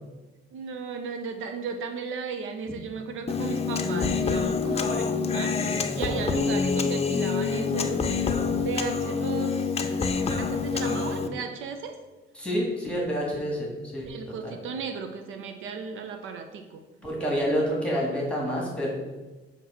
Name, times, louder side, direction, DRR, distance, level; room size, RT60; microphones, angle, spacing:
voice 1, 0.5-12.0 14.0-16.8, right 5 dB, 85° right, 6 dB, 0.6 m, -35 dB
Human voice, 3.3-11.3, left 5 dB, 30° left, 0.6 m, -26 dB
voice 2, 12.3-14.5 17.0-18.9, equal, 5° left, -3 dB, 1.9 m, -28 dB
7.2 x 3.0 x 5.6 m, 1.2 s
cardioid pair, 90°, 20 cm